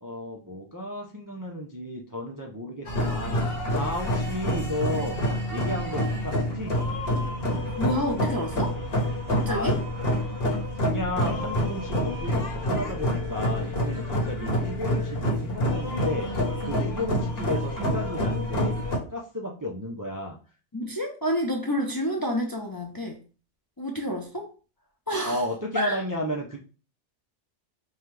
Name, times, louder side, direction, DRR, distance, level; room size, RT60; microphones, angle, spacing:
voice 1, 0.0-3.5 3.7-5.2 5.5-6.7 9.5-9.8 10.7-16.3 16.6-20.4 25.3-26.6, left 1 dB, 25° right, 0.4 m, -33 dB
sound 1, 2.8-19.0, equal, 55° left, 1.2 m, -27 dB
voice 2, 7.6-8.8 9.3-9.8 14.4-14.5 20.7-23.2 23.8-24.5 25.1-25.4 25.7-26.0, equal, 25° left, 0.5 m, -29 dB
5.5 x 2.3 x 3.2 m
omnidirectional pair, 1.2 m